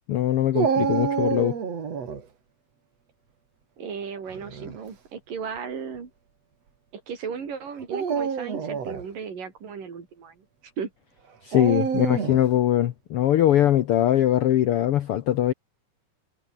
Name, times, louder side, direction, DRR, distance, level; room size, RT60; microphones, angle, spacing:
voice 1, 0.1-1.6 11.4-15.5, left 12 dB, 80° left, 1.2 m, -21 dB
Dog, 0.5-2.2 4.3-4.8 5.6-5.7 7.8-9.0 11.5-12.5, right 6 dB, 50° right, 3.9 m, -27 dB
voice 2, 3.8-6.1 6.9-10.9, right 6 dB, 85° right, 5.8 m, -36 dB
omnidirectional pair, 3.7 m